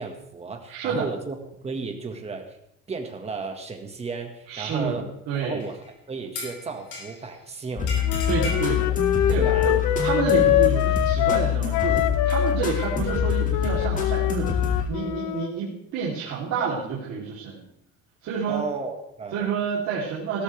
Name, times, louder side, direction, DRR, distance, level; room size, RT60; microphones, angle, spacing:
voice 1, 0.0-2.6 2.9-5.1 5.4-7.9 9.3-9.7 18.5-19.5, right 4 dB, 20° right, 4 dB, 1.7 m, -34 dB
voice 2, 0.7-1.1 4.5-5.6 8.3-8.9 9.3-17.6 18.2-18.6 19.3-20.4, right 5 dB, 60° right, -7 dB, 3.4 m, -29 dB
sound 1, 5.6-5.9 6.3-7.3 7.9-8.7, left 3 dB, 55° left, 5.6 m, -36 dB
sound 2, 7.8-14.9, left 8 dB, 25° left, 2.1 m, -25 dB
Wind instrument woodwind instrument, 8.1-15.5, left 13 dB, 75° left, 0.8 m, -25 dB
17.0 x 13.0 x 3.4 m, 0.76 s
cardioid pair, 160°, 29 cm